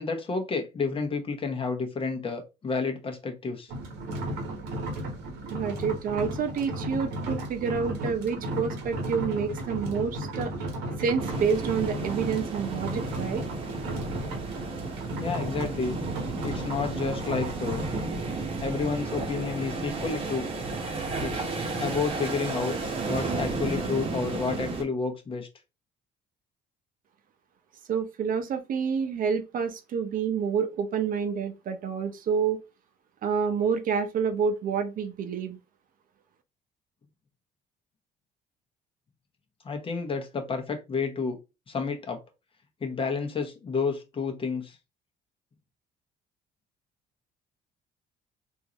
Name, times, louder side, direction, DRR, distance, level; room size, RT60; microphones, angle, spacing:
voice 1, 0.0-3.7 15.2-16.0 16.4-17.8 18.6-20.5 21.2-21.5 21.8-22.8 23.1-25.5 39.6-41.4 41.7-42.2 42.8-44.8, left 4 dB, 30° left, 0.9 m, -30 dB
sound 1, 3.7-18.0, right 1 dB, 90° right, 1.2 m, -34 dB
voice 2, 5.5-10.5 11.0-13.4 27.9-32.6 33.2-35.6, right 6 dB, 55° right, 0.7 m, -28 dB
sound 2, 11.2-24.8, right 3 dB, 35° right, 1.0 m, -33 dB
3.7 x 2.6 x 2.9 m
cardioid pair, 110°, 17 cm